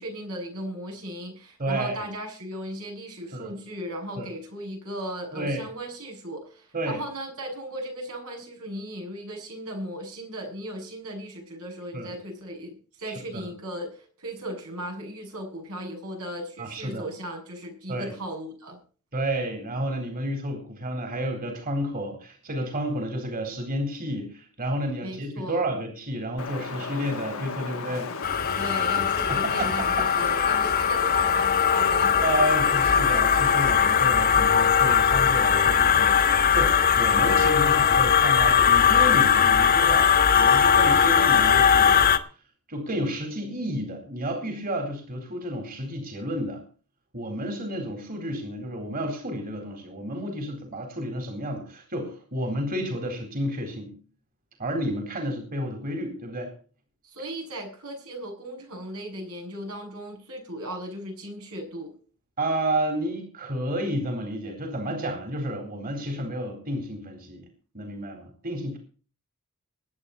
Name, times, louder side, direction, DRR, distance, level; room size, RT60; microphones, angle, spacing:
voice 1, 0.0-18.8 25.0-25.7 28.5-32.2 57.0-61.9, right 1 dB, 85° right, 2 dB, 7.7 m, -37 dB
voice 2, 1.6-2.1 3.3-3.6 4.2-4.3 5.3-5.6 6.7-7.0 11.9-12.1 13.0-13.5 16.6-17.1 17.9-18.1 19.1-28.1 29.3-30.1 32.2-42.0 42.7-46.6 47.1-53.9 54.6-56.5 62.4-67.5 67.7-68.8, right 1 dB, 45° right, 5 dB, 4.2 m, -31 dB
Wind, 26.4-34.0, left 4 dB, 70° left, 1.3 m, -34 dB
sound 1, 28.2-42.2, left 7 dB, 45° left, 1.5 m, -20 dB
21.5 x 9.2 x 4.3 m, 0.40 s
head